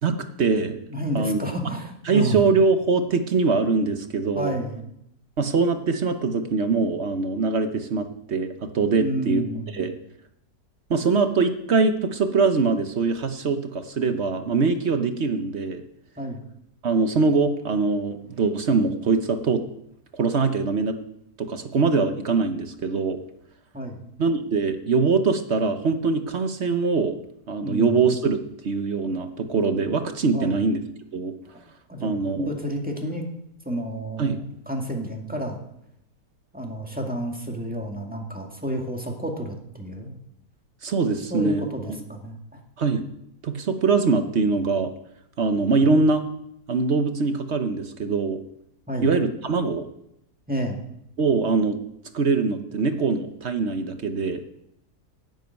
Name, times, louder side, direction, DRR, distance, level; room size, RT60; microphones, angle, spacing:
voice 1, 0.0-0.8 1.1-1.4 2.1-4.5 5.4-9.4 9.7-9.9 10.9-15.8 16.8-19.6 20.1-21.0 21.4-23.2 24.2-27.2 27.5-28.4 28.6-30.8 31.1-31.3 32.0-32.5 34.2-34.4 40.8-42.0 42.8-43.1 43.4-44.9 45.4-46.3 46.7-48.4 49.0-49.9 51.2-51.8 52.1-54.4, right 4 dB, 50° right, 8 dB, 1.0 m, -23 dB
voice 2, 0.9-2.4 4.3-4.9 9.0-9.8 16.2-16.4 23.7-24.1 27.6-28.0 30.3-30.6 31.9-33.2 33.7-35.6 36.5-40.1 41.3-42.6 45.8-45.9 48.9-49.1 50.5-50.8, equal, 5° right, 1 dB, 2.0 m, -30 dB
10.5 x 7.8 x 9.3 m, 0.79 s
omnidirectional pair, 1.7 m